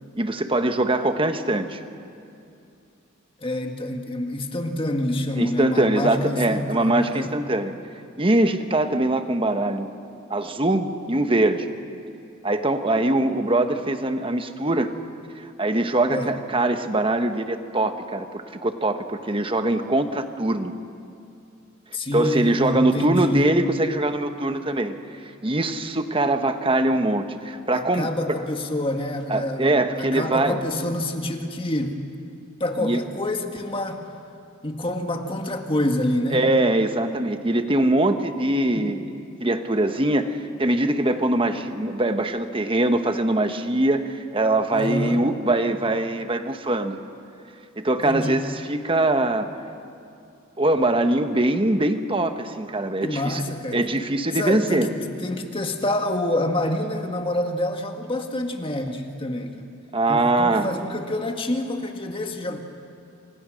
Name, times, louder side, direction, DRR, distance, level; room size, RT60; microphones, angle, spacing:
voice 1, 0.1-1.8 5.4-7.7 8.2-9.9 10.3-11.7 12.4-14.9 15.4-20.7 22.1-24.9 25.2-28.1 29.3-30.6 32.8-33.0 36.3-39.1 39.4-47.0 47.8-49.5 50.6-53.4 53.7-54.9 59.9-60.7 62.5-62.6, right 2 dB, 25° right, 8 dB, 1.2 m, -22 dB
voice 2, 3.4-7.3 16.1-16.3 21.9-23.4 27.7-32.0 32.6-34.0 34.6-36.4 38.7-38.9 44.7-45.2 48.0-48.4 53.0-53.8 54.3-59.6 60.1-62.6, left 1 dB, 25° left, 4 dB, 1.7 m, -27 dB
28.5 x 26.0 x 6.4 m, 2.5 s
head